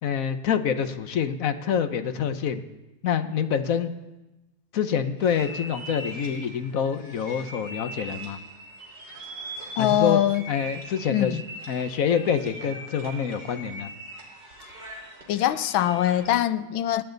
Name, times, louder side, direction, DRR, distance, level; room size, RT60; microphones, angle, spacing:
voice 1, 0.0-2.6 3.0-3.9 4.7-8.4 9.8-10.2 10.5-11.3 11.7-13.9, left 7 dB, 55° left, 9 dB, 1.1 m, -26 dB
sound 1, 5.2-16.4, right 1 dB, 60° right, 3.9 m, -41 dB
voice 2, 9.8-10.5 11.1-11.4 15.3-17.0, left 11 dB, 90° left, 13 dB, 1.5 m, -23 dB
28.5 x 10.0 x 4.0 m, 1.1 s
omnidirectional pair, 2.1 m